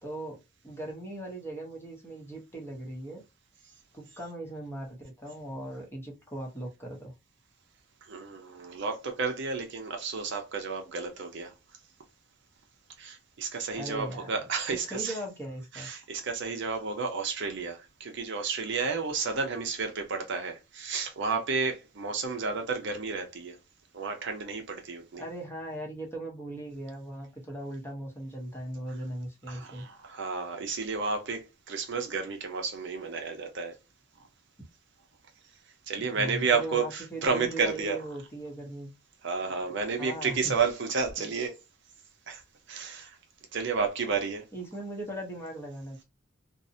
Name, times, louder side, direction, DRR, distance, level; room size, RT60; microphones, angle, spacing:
voice 1, 0.0-3.2 3.9-7.1 13.7-14.3 14.7-15.9 25.2-29.8 36.0-38.9 40.0-40.5 41.2-41.3 44.5-46.0, right 1 dB, 10° left, 0.7 m, -39 dB
voice 2, 8.1-11.5 13.0-15.1 15.7-23.6 23.9-25.2 29.5-33.7 35.9-38.0 39.2-41.5 42.3-42.4 42.7-43.2 43.5-44.4, right 4 dB, 60° right, 0.6 m, -31 dB
2.5 x 2.0 x 2.5 m
head